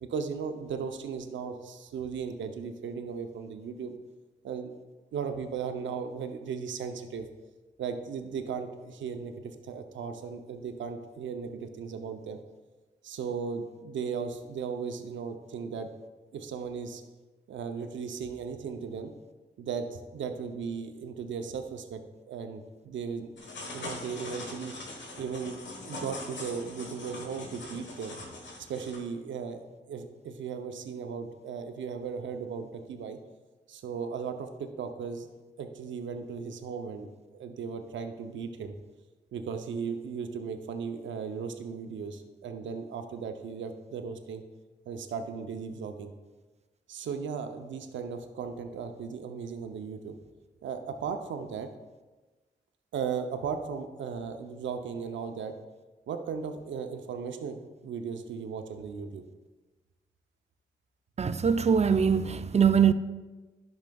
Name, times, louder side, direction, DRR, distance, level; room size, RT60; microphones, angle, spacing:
voice 1, 0.0-4.0 4.4-4.7 5.1-7.3 7.8-12.4 13.0-15.9 16.3-17.0 17.5-19.1 19.6-22.0 22.3-23.3 23.7-24.7 25.2-25.6 25.9-28.3 28.7-33.2 33.7-38.7 39.3-44.4 44.9-46.1 46.9-50.2 50.6-51.7 52.9-55.5 56.1-59.2, right 6 dB, 85° right, 0.6 m, -36 dB
sound 1, 23.4-29.0, left 2 dB, 75° left, 1.3 m, -42 dB
voice 2, 61.2-62.9, right 7 dB, 35° right, 0.4 m, -22 dB
10.5 x 6.3 x 2.3 m
supercardioid pair, 40°, 19 cm